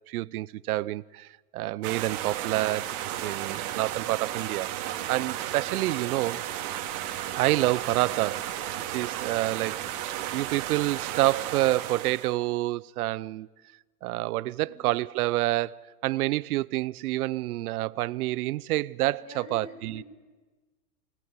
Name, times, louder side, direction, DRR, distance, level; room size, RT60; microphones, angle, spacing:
voice 1, 0.1-2.9 3.2-4.7 5.1-6.4 7.3-8.5 8.9-13.5 14.0-20.0, right 17 dB, 65° right, 0.8 m, -28 dB
sound 1, 1.8-12.3, right 12 dB, 45° right, 2.9 m, -34 dB
voice 2, 19.2-20.0, left 4 dB, 35° left, 4.7 m, -46 dB
26.5 x 19.5 x 9.6 m
hypercardioid pair, 125°, 48 cm